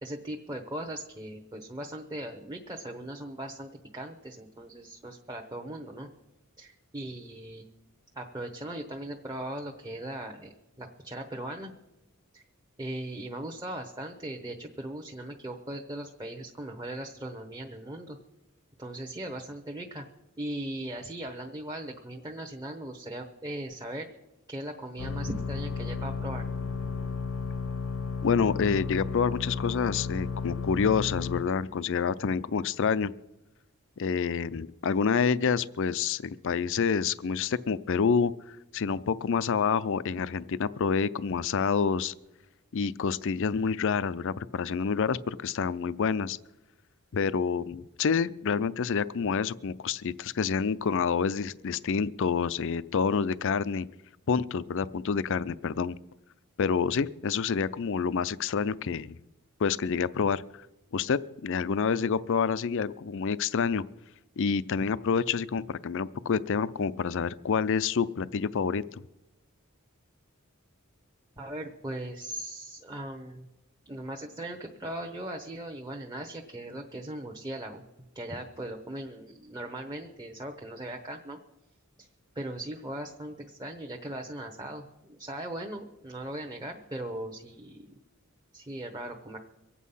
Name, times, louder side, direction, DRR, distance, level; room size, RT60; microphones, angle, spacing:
voice 1, 0.0-6.1 6.6-7.6 8.1-11.7 12.3-12.4 12.8-18.2 18.8-20.0 20.4-24.1 24.5-26.4 71.4-73.5 73.9-77.8 78.1-81.4 82.0-82.1 82.3-87.9 88.5-89.4, right 1 dB, 20° right, 2 dB, 1.0 m, -39 dB
sound 1, 25.0-31.4, left 4 dB, 80° left, 0.9 m, -33 dB
voice 2, 28.2-33.1 34.0-42.1 42.7-46.4 47.1-53.9 54.3-56.0 56.6-59.2 59.6-60.7 60.9-63.8 64.4-69.0, left 6 dB, 60° left, 18 dB, 0.5 m, -28 dB
23.5 x 8.4 x 5.5 m, 0.98 s
head